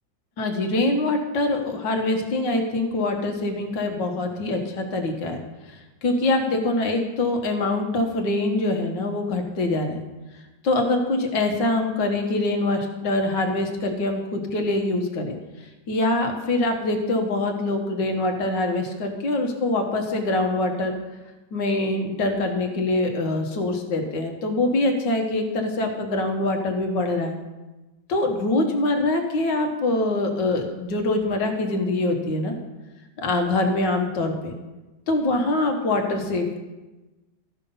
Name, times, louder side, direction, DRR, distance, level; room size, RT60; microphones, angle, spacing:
voice 1, 0.4-5.4 5.7-10.0 10.6-15.3 15.9-21.0 21.5-27.4 28.1-32.5 33.2-34.5 35.1-36.6, left 2 dB, 65° left, 3 dB, 1.9 m, -24 dB
14.0 x 5.5 x 5.4 m, 1.1 s
omnidirectional pair, 2.1 m